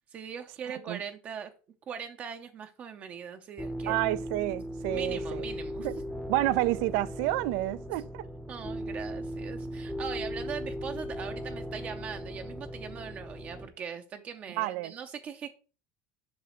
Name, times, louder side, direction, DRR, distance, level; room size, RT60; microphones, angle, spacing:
voice 1, 0.1-1.5 1.9-3.9 4.9-5.9 8.5-15.5, right 7 dB, 40° right, 0.6 m, -40 dB
voice 2, 0.7-1.0 3.9-5.4 5.8-5.9 6.3-8.2 14.6-14.9, right 17 dB, 75° right, 0.4 m, -29 dB
sound 1, 3.6-13.7, equal, ahead, 0.7 m, -37 dB
7.1 x 4.8 x 3.0 m
supercardioid pair, 115°, 4 cm